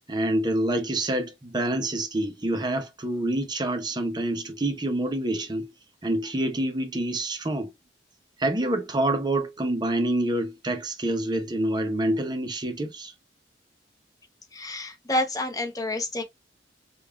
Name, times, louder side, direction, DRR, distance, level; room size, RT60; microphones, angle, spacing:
voice 1, 0.1-5.7 6.0-7.7 8.4-13.1, right 1 dB, 25° right, 0.7 m, -27 dB
voice 2, 14.5-16.2, left 1 dB, 20° left, 0.8 m, -28 dB
5.3 x 2.4 x 2.3 m
head